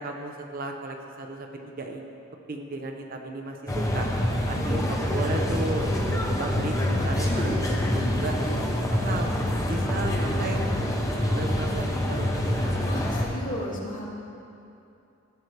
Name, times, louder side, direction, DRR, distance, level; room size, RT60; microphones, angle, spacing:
voice 1, 0.0-2.1 2.5-4.1 4.5-8.3 8.9-9.3 9.7-10.6 11.3-12.9, right 2 dB, 45° right, 3 dB, 0.7 m, -35 dB
sound 1, 3.7-13.3, left 1 dB, 15° left, 0.9 m, -26 dB
voice 2, 4.4-4.8 9.8-10.5 12.8-14.0, left 1 dB, 40° left, -4 dB, 1.8 m, -36 dB
14.5 x 7.9 x 3.3 m, 2.7 s
head